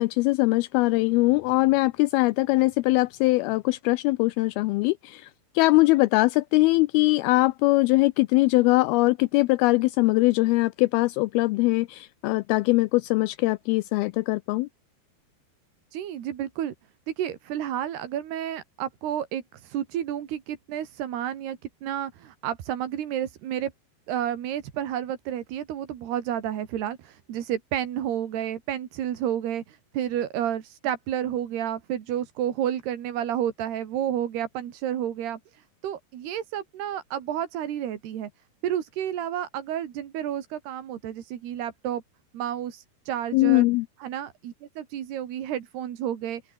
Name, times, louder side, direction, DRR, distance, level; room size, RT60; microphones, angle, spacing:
voice 1, 0.0-5.3 5.6-14.7 43.3-43.9, left 21 dB, 80° left, 2.3 m, -22 dB
voice 2, 15.9-16.7 17.1-23.7 24.1-38.3 38.6-42.0 42.3-43.7 44.0-46.4, right 10 dB, 75° right, 4.2 m, -31 dB
omnidirectional pair, 4.7 m